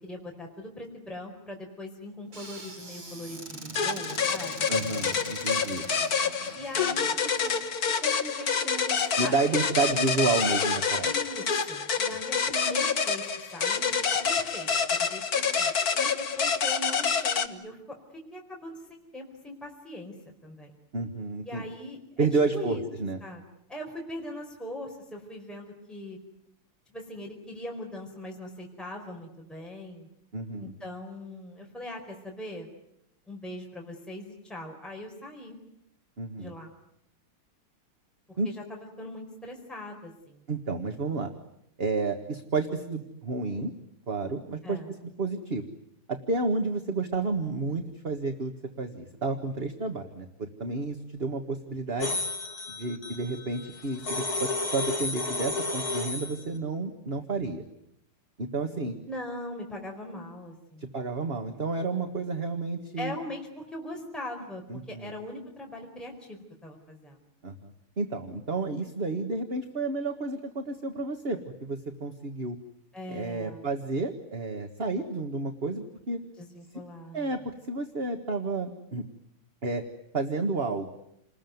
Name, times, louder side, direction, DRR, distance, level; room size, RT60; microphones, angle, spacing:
voice 1, 0.0-4.7 6.5-7.5 7.8-9.3 9.8-10.0 11.0-13.2 13.5-17.8 18.3-20.2 20.4-20.7 21.5-22.3 22.5-22.8 23.2-23.4 23.7-26.2 26.9-30.1 30.6-32.7 33.3-35.6 36.4-36.7 38.3-40.4 44.6-44.9 59.0-60.9 63.0-64.6 64.9-67.2 72.9-73.7 76.4-77.4, left 1 dB, ahead, 0 dB, 4.6 m, -40 dB
Squeak / Cupboard open or close, 2.3-7.6, right 2 dB, 80° right, 7.2 m, -43 dB
sound 1, 3.8-17.5, left 6 dB, 45° left, 1.8 m, -27 dB
voice 2, 4.7-5.9 9.2-11.1 20.9-21.6 22.2-23.2 30.3-30.7 36.2-36.5 38.4-38.5 40.5-41.3 41.8-43.7 44.1-45.6 46.1-48.5 48.8-52.2 52.7-57.6 58.4-59.0 60.8-63.1 64.7-65.1 67.4-67.7 68.0-72.6 73.1-76.2 77.1-77.4 77.7-79.0 79.6-79.8 80.1-80.9, right 3 dB, 30° right, 5 dB, 1.7 m, -31 dB
sound 2, 52.0-56.5, left 2 dB, 70° left, 2.7 m, -32 dB
29.5 x 20.5 x 9.4 m, 0.78 s
omnidirectional pair, 2.4 m